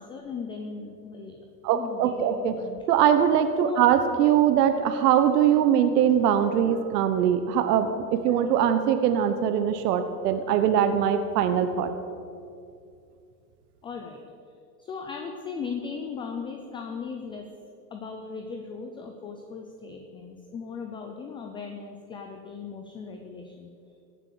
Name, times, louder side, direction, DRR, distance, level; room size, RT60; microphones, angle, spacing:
voice 1, 0.0-1.4 1.7-2.8 3.6-3.8 8.3-8.5 13.8-14.2 14.8-17.5 17.9-23.7, left 5 dB, 10° left, 3 dB, 0.3 m, -38 dB
voice 2, 1.6-2.6 2.9-11.9, right 9 dB, 70° right, 9 dB, 1.1 m, -22 dB
16.5 x 7.5 x 6.4 m, 2.5 s
supercardioid pair, 125°, 49 cm